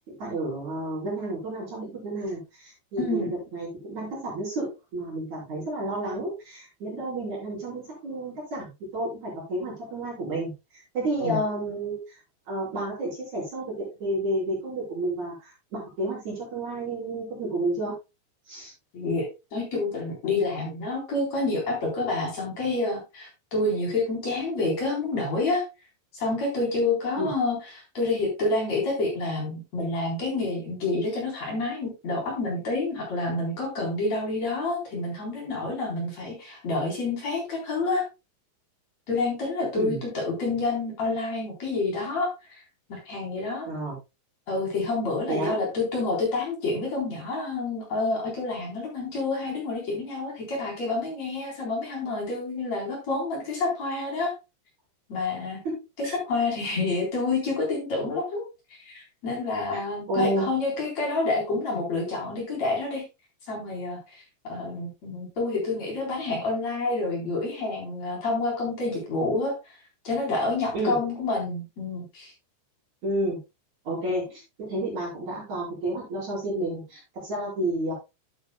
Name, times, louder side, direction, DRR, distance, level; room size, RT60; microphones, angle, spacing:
voice 1, 0.1-3.3 3.5-12.2 12.5-18.0 18.5-18.7 27.2-27.3 39.7-40.0 43.7-44.0 45.3-45.6 55.6-56.2 60.1-60.5 70.7-71.0 73.0-73.4 73.8-77.9, right 1 dB, 40° right, -5 dB, 5.9 m, -31 dB
voice 2, 3.0-3.3 11.2-11.4 18.9-19.3 19.5-25.6 26.1-38.0 39.1-42.6 42.9-43.7 44.5-54.3 55.1-55.6 56.0-58.4 58.8-63.0 63.5-64.2 64.5-69.5 70.0-72.3, left 3 dB, 40° left, -1 dB, 4.6 m, -28 dB
12.5 x 8.7 x 2.2 m, 0.25 s
omnidirectional pair, 5.3 m